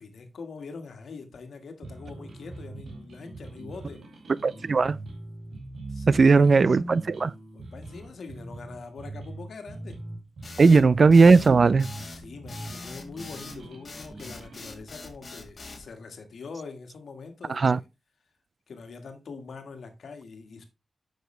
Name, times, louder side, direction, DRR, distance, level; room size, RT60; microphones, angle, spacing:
voice 1, 0.0-4.0 5.9-6.5 7.5-10.0 10.6-10.8 12.2-17.8 18.7-20.7, left 4 dB, 75° left, 1.7 m, -43 dB
sound 1, 1.8-14.8, right 2 dB, 75° right, 2.5 m, -41 dB
voice 2, 4.4-5.0 6.1-7.3 10.6-11.9 17.5-17.8, right 4 dB, 55° right, 0.3 m, -17 dB
sound 2, 10.4-15.9, left 3 dB, 45° left, 1.9 m, -43 dB
8.0 x 6.6 x 3.2 m
cardioid pair, 65°, 0 cm